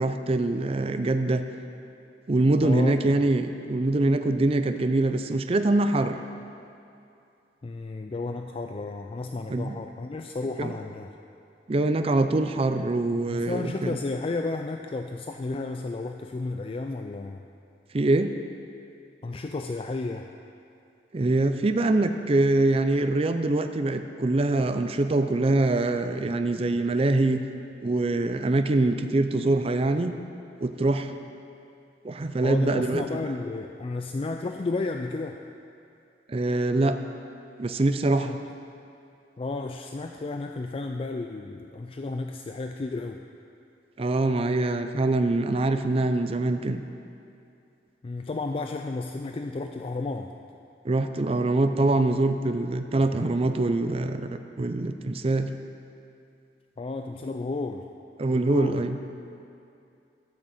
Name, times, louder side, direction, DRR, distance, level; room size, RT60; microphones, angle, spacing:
voice 1, 0.0-1.4 2.3-6.2 9.5-9.8 10.6-10.7 11.7-14.0 17.9-18.3 21.1-27.4 27.8-30.1 30.6-31.1 32.0-33.2 36.3-37.0 37.6-38.3 44.0-46.8 50.8-55.5 58.2-59.0, right 2 dB, 35° right, 8 dB, 0.5 m, -24 dB
voice 2, 2.6-3.1 7.6-11.1 13.3-17.4 19.2-20.3 32.4-35.4 38.2-38.4 39.4-43.2 48.0-50.3 56.8-57.9 58.3-58.8, left 3 dB, 30° left, 5 dB, 0.3 m, -32 dB
12.5 x 6.3 x 7.2 m, 2.6 s
head